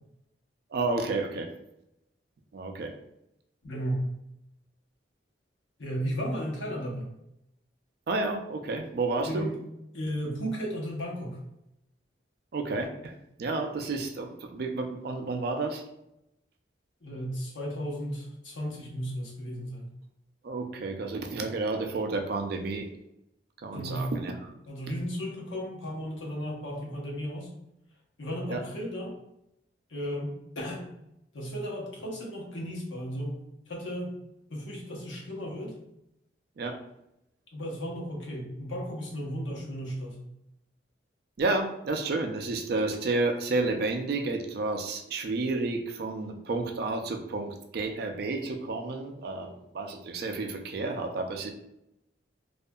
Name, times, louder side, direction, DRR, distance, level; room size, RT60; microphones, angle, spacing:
voice 1, 0.7-1.5 2.5-3.0 8.1-9.5 12.5-15.8 20.4-22.9 23.6-24.5 28.5-28.7 36.6-36.8 41.4-51.5, right 3 dB, 55° right, 4 dB, 0.3 m, -31 dB
voice 2, 3.6-4.0 5.8-7.1 9.2-9.6 9.9-11.4 17.0-19.9 23.7-24.1 24.7-27.5 28.2-29.1 29.9-30.8 31.3-33.4 33.7-34.1 34.5-35.7 37.5-40.2, equal, 85° left, -2 dB, 0.8 m, -34 dB
2.7 x 2.4 x 2.2 m, 0.84 s
head